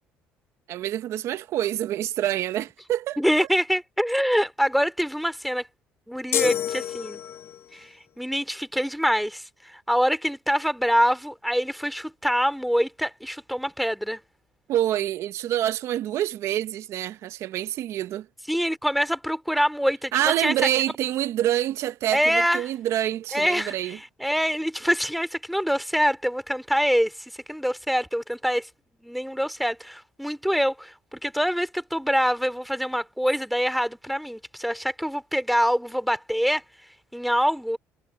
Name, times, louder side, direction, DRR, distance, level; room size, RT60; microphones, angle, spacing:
voice 1, 0.7-3.2 14.7-18.2 20.1-24.0, right 12 dB, 65° right, 0.9 m, -26 dB
voice 2, 3.2-5.7 6.1-7.2 7.7-9.4 9.7-14.2 18.5-20.5 22.1-22.7 23.3-27.1 27.5-28.7 29.0-36.6 37.1-37.8, equal, ahead, 2.9 m, -25 dB
sound 1, 6.3-7.7, left 11 dB, 55° left, 0.6 m, -28 dB
supercardioid pair, 75°, 5 cm